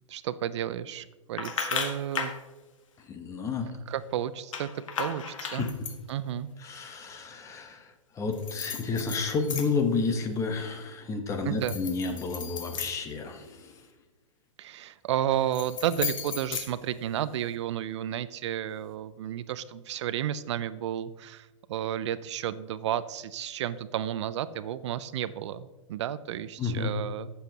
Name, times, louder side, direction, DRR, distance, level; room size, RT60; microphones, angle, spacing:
voice 1, 0.1-2.3 3.9-4.7 5.0-5.7 6.1-6.5 11.4-11.8 14.6-27.3, right 10 dB, 60° right, 16 dB, 0.4 m, -32 dB
sound 1, 1.4-2.4 4.5-6.1 8.3-9.9 10.3-10.8 11.5-13.8 15.3-17.4, left 6 dB, 75° left, 1.6 m, -36 dB
voice 2, 3.0-3.7 5.6-5.7 6.6-13.7 26.6-26.9, left 4 dB, 20° left, 5 dB, 1.1 m, -31 dB
14.0 x 7.0 x 2.9 m, 1.1 s
hypercardioid pair, 140°, 17 cm